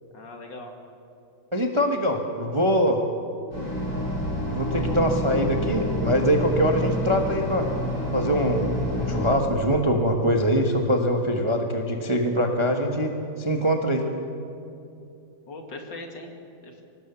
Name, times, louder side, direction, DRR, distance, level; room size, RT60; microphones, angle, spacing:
voice 1, 0.1-0.7 15.5-16.8, left 2 dB, 60° left, 3 dB, 2.8 m, -40 dB
voice 2, 1.5-3.0 4.5-7.7 8.1-8.7 9.0-14.1, equal, 20° right, 3 dB, 1.1 m, -23 dB
sound 1, 3.5-9.3, left 1 dB, 80° left, 7.9 m, -28 dB
24.0 x 18.5 x 7.0 m, 2.7 s
omnidirectional pair, 2.2 m